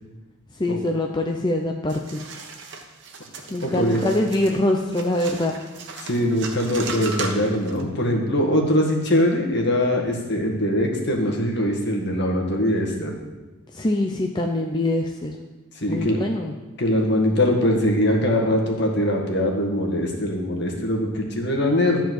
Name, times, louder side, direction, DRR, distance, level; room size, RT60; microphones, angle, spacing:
voice 1, 0.5-2.2 3.5-5.6 13.7-15.4 15.9-16.5, left 1 dB, 20° left, 2 dB, 0.5 m, -24 dB
sound 1, 1.9-7.8, right 4 dB, 55° right, 1.2 m, -36 dB
voice 2, 3.6-4.0 6.0-13.1 15.7-16.2 16.8-22.0, left 1 dB, 55° left, 0 dB, 1.8 m, -22 dB
13.0 x 4.5 x 7.7 m, 1.2 s
head